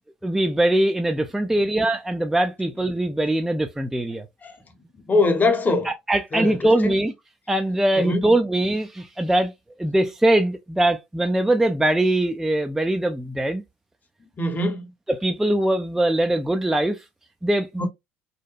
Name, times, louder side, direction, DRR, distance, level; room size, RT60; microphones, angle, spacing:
voice 1, 0.2-4.3 5.8-7.1 7.5-9.5 9.8-13.6 15.1-17.0 17.4-17.9, right 1 dB, 5° right, 0.3 m, -22 dB
voice 2, 5.1-5.9 6.3-7.0 8.0-8.3 14.4-14.9 17.8-17.9, left 2 dB, 30° left, 0.8 m, -22 dB
2.7 x 2.1 x 2.3 m
hypercardioid pair, 75°, 6 cm